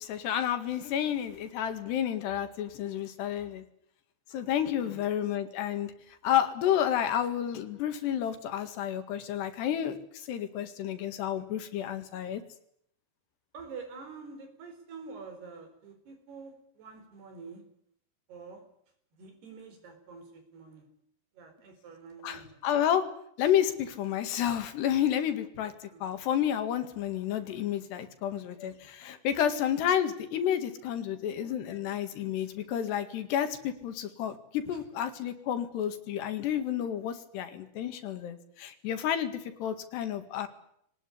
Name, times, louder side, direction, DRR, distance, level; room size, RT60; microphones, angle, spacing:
voice 1, 0.0-3.6 4.3-5.9 6.2-12.4 22.2-23.1 23.4-40.5, left 10 dB, 75° left, 9 dB, 4.1 m, -30 dB
voice 2, 4.8-5.1 13.5-17.7 18.3-18.6 19.1-20.9 21.3-22.6 25.9-26.1 34.7-34.8, right 4 dB, 65° right, 6 dB, 6.3 m, -47 dB
23.5 x 19.5 x 10.0 m, 0.70 s
omnidirectional pair, 4.9 m